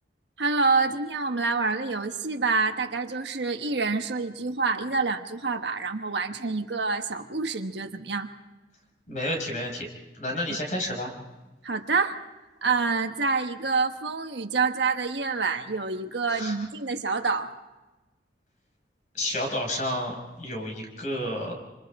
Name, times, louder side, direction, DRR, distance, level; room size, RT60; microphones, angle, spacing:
voice 1, 0.4-8.3 11.6-12.2 12.6-17.5, right 4 dB, 75° right, 6 dB, 1.4 m, -27 dB
voice 2, 9.1-9.9 10.1-11.1 16.3-16.6 19.1-21.5, left 1 dB, 45° left, 1 dB, 5.6 m, -30 dB
28.0 x 26.0 x 3.7 m, 1.1 s
head